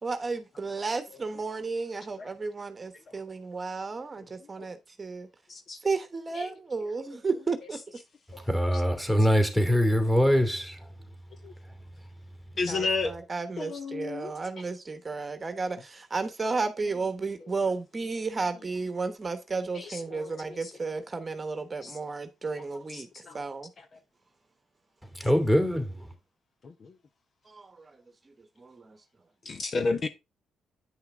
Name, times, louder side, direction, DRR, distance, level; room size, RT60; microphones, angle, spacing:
voice 1, 0.0-5.3 5.8-7.8 12.7-23.1 23.3-23.7 27.5-27.7 28.6-29.0, right 4 dB, 30° right, 1.1 m, -33 dB
voice 2, 8.5-10.8 25.2-25.9, equal, 10° left, 2.5 m, -23 dB
voice 3, 12.6-13.1 13.6-14.3 17.4-17.5 19.7-20.8 21.8-22.0 22.9-23.4 23.8-23.9 25.2-25.3 26.6-26.9 29.4-30.1, left 3 dB, 45° left, 0.9 m, -33 dB
9.2 x 5.8 x 3.7 m
cardioid pair, 90°, 0 cm